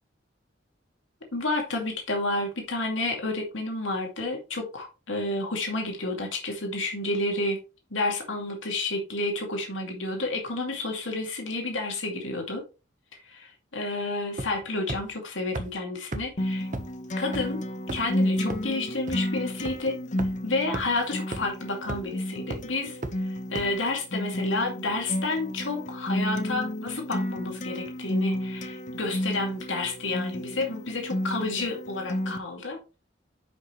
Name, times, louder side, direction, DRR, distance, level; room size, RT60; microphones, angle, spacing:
voice 1, 1.3-7.6 7.9-12.6 13.3-16.7 17.2-17.6 17.9-20.0 20.4-32.8, left 2 dB, 85° left, 2.3 m, -30 dB
sound 1, 14.4-14.6 14.9-15.0 15.6-15.7 16.1-16.2 16.7-16.8 17.3-17.4 17.9-18.1 18.5-18.6 19.1-19.2 19.7-19.8 20.2-20.3 20.7-20.8 21.3-21.4 21.9-22.1 22.5-22.6 23.0-23.1 23.6-23.7, right 2 dB, 45° right, 1.2 m, -32 dB
Acoustic guitar, 16.4-32.4, left 1 dB, 40° left, 1.0 m, -31 dB
10.5 x 5.5 x 3.2 m
head